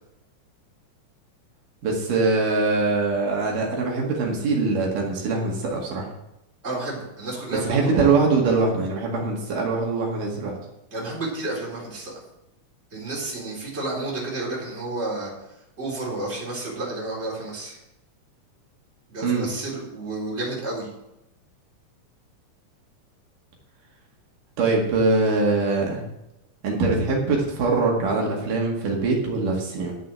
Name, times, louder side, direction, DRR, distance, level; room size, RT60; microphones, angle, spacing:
voice 1, 1.8-6.1 7.6-10.6 19.2-19.5 24.6-26.0 26.6-29.9, right 3 dB, 80° right, -1 dB, 3.6 m, -23 dB
voice 2, 6.6-8.1 10.9-12.1 12.9-15.3 15.8-17.8 19.1-20.9, right 2 dB, 20° right, -4 dB, 4.1 m, -31 dB
10.5 x 7.5 x 7.6 m, 0.87 s
omnidirectional pair, 3.7 m